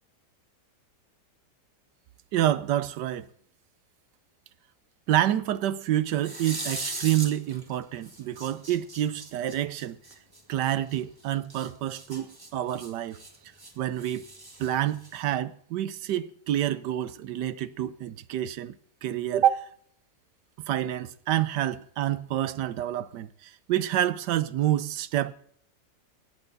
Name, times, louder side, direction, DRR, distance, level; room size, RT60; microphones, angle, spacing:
voice 1, 2.3-3.3 5.1-10.0 10.5-13.2 13.8-14.2 14.6-18.7 19.0-19.7 20.7-25.3, right 12 dB, 80° right, 1.3 m, -28 dB
sound 1, 6.2-7.7 8.0-11.0 11.5-13.7 14.0-15.3, right 2 dB, 15° right, 1.0 m, -39 dB
18.5 x 9.0 x 4.0 m
omnidirectional pair, 1.9 m